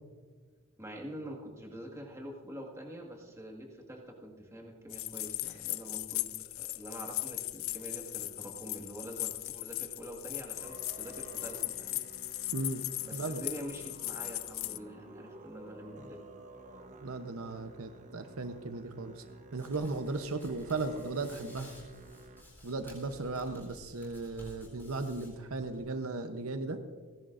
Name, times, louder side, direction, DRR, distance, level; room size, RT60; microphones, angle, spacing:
voice 1, 0.8-12.0 13.0-16.3 23.5-23.6, equal, 15° right, 0 dB, 1.7 m, -45 dB
sound 1, 4.9-14.8, left 17 dB, 60° left, 0.4 m, -38 dB
Musical instrument, 10.5-22.4, right 2 dB, 35° right, 1.0 m, -52 dB
voice 2, 13.1-13.4 17.0-19.2 19.5-21.7 22.6-26.8, right 3 dB, 70° right, 7 dB, 0.8 m, -36 dB
Hands, 19.6-25.8, left 1 dB, 10° left, 4.4 m, -55 dB
29.5 x 11.0 x 2.6 m, 1.6 s
head